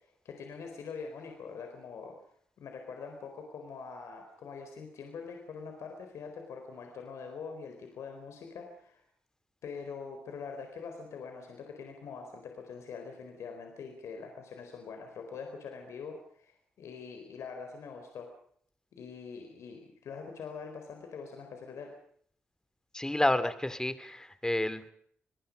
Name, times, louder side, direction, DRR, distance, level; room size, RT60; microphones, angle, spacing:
voice 1, 0.2-2.1 2.6-9.0 9.6-18.3 18.9-21.9, left 5 dB, 70° left, 4 dB, 4.3 m, -44 dB
voice 2, 22.9-24.9, left 1 dB, 15° left, 13 dB, 2.6 m, -30 dB
28.5 x 19.5 x 5.3 m, 0.62 s
hypercardioid pair, 40°, 5 cm